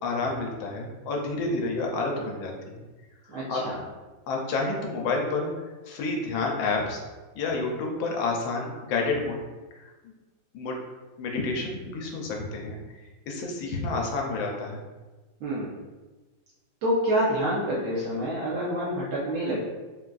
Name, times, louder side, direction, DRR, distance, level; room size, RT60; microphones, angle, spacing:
voice 1, 0.0-2.8 3.3-3.6 4.3-5.5 5.8-7.0 7.3-9.4 9.8-9.9 10.5-10.7 11.2-12.8 13.3-14.8, left 3 dB, 90° left, 0 dB, 1.3 m, -29 dB
voice 2, 3.3-3.8 15.4-15.7 16.8-19.6, equal, 70° right, -6 dB, 0.8 m, -27 dB
3.9 x 2.3 x 2.3 m, 1.2 s
omnidirectional pair, 2.0 m